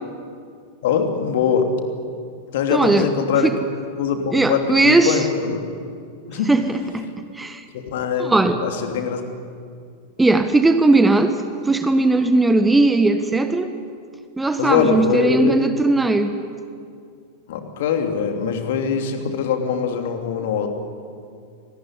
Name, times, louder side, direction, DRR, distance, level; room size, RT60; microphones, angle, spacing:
voice 1, 0.8-1.8 2.5-3.6 4.0-5.6 6.3-6.5 7.7-9.3 14.6-15.5 17.5-20.7, left 6 dB, 55° left, 5 dB, 3.0 m, -22 dB
voice 2, 2.7-3.1 3.4-3.5 4.3-5.2 6.5-7.1 7.3-7.6 8.2-8.6 10.2-13.7 14.4-16.4, right 2 dB, 10° right, 9 dB, 1.3 m, -18 dB
27.0 x 19.5 x 10.0 m, 2.3 s
figure-of-eight pair, 90°, 0 cm